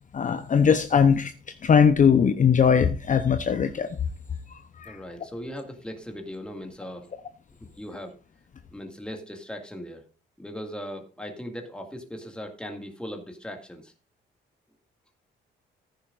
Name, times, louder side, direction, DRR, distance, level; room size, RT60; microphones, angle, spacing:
voice 1, 0.1-1.3 1.6-3.9 4.8-5.0, left 7 dB, 40° left, 0.8 m, -20 dB
voice 2, 4.9-7.1 7.8-8.1 8.7-10.0 10.4-13.9, equal, 5° left, 2.1 m, -38 dB
14.5 x 10.0 x 2.5 m
cardioid pair, 90°, 20 cm